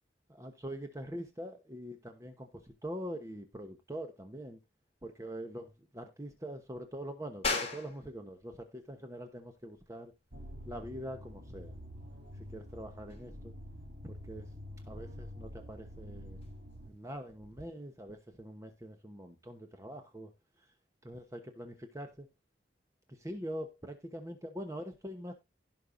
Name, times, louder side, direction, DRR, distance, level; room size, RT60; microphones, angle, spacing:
voice 1, 0.3-4.6 5.0-10.1 10.6-11.8 12.3-13.5 14.0-14.5 14.8-16.4 16.8-20.3 20.6-20.7 21.0-22.3 23.1-25.3, equal, 15° right, 1.1 m, -44 dB
sound 1, 7.4-17.7, left 4 dB, 35° left, 3.4 m, -44 dB
sound 2, 10.3-16.9, left 1 dB, 50° right, 2.1 m, -47 dB
16.5 x 5.6 x 2.6 m
head